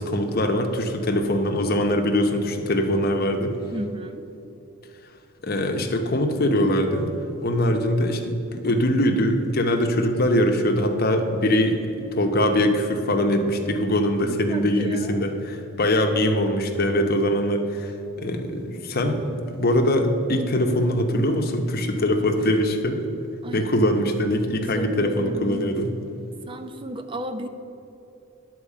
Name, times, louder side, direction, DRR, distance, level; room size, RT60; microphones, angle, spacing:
voice 1, 0.0-3.6 5.4-7.1 7.4-17.9 18.2-19.2 19.5-23.0 23.5-25.9, left 1 dB, 45° left, 4 dB, 0.9 m, -22 dB
voice 2, 3.7-4.2 14.2-15.2 23.4-23.7 24.5-25.7 26.5-27.5, right 1 dB, 25° right, 8 dB, 0.5 m, -33 dB
10.0 x 4.5 x 7.3 m, 2.9 s
head